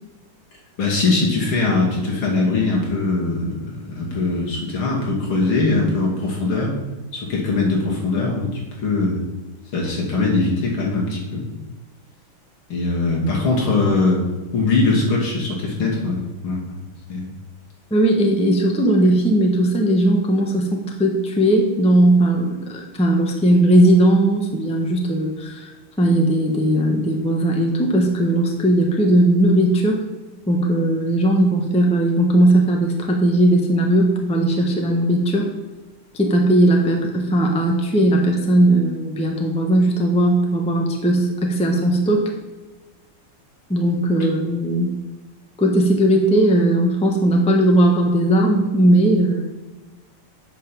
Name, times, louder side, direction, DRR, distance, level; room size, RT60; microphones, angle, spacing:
voice 1, 0.8-6.8 7.1-9.2 9.7-11.5 12.7-14.2 14.5-16.8 17.1-17.3, left 3 dB, 75° left, -2 dB, 3.0 m, -21 dB
voice 2, 17.9-25.7 26.0-30.0 30.5-35.5 36.1-42.3 43.7-44.9 45.6-49.4, right 1 dB, 5° left, 1 dB, 0.9 m, -18 dB
8.3 x 5.8 x 6.9 m, 1.2 s
omnidirectional pair, 2.3 m